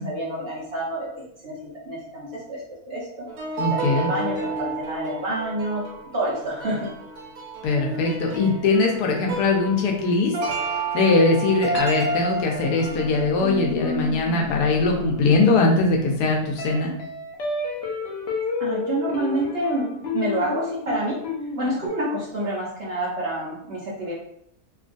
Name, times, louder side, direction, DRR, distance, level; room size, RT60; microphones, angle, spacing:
voice 1, 0.0-1.6 1.9-3.3 3.7-5.8 6.1-6.9 18.6-21.2 21.5-24.1, right 1 dB, 55° right, -6 dB, 0.8 m, -28 dB
sound 1, 3.3-14.6 14.8-15.0, right 2 dB, 85° right, 1.2 m, -31 dB
voice 2, 3.6-4.1 7.6-10.3 10.6-16.9, left 3 dB, 90° left, 1 dB, 1.2 m, -21 dB
sound 2, 12.7-21.9, left 4 dB, 65° left, 0.6 m, -31 dB
3.0 x 2.3 x 2.5 m, 0.71 s
omnidirectional pair, 1.6 m